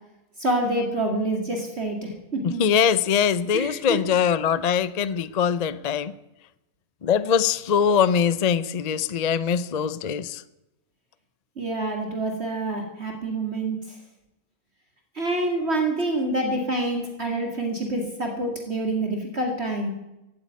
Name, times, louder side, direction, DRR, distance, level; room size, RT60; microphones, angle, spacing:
voice 1, 0.4-2.6 3.5-4.0 11.6-14.0 15.1-19.9, right 2 dB, 45° right, 2.6 m, -27 dB
voice 2, 2.4-6.1 7.0-10.4, left 7 dB, 45° left, 0.5 m, -22 dB
16.5 x 8.8 x 9.4 m
omnidirectional pair, 1.5 m